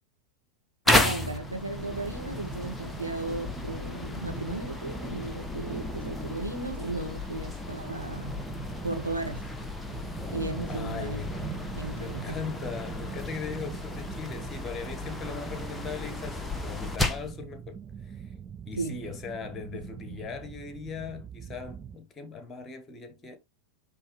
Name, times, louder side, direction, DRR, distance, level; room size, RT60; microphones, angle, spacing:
sound 1, 0.9-17.3, left 1 dB, 5° left, 0.9 m, -33 dB
voice 1, 0.9-8.4 8.8-9.4 10.3-11.2 11.7-12.4 18.8-19.0, right 3 dB, 85° right, 1.6 m, -35 dB
sound 2, 8.3-22.0, right 7 dB, 20° right, 0.4 m, -44 dB
voice 2, 10.7-11.4 11.9-18.3 18.7-23.4, left 5 dB, 20° left, 1.4 m, -39 dB
9.7 x 3.4 x 3.2 m
figure-of-eight pair, 90°, 0 cm